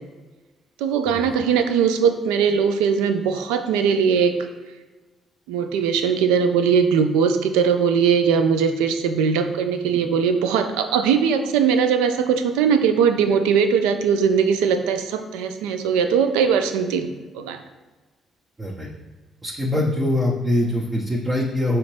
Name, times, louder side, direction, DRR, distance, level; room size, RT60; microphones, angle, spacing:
voice 1, 0.8-4.3 5.5-17.1 17.3-17.6, right 6 dB, 80° right, 8 dB, 0.3 m, -20 dB
voice 2, 19.4-21.8, left 1 dB, 25° right, -4 dB, 0.8 m, -23 dB
5.0 x 3.0 x 3.2 m, 1.3 s
hypercardioid pair, 45°, 0 cm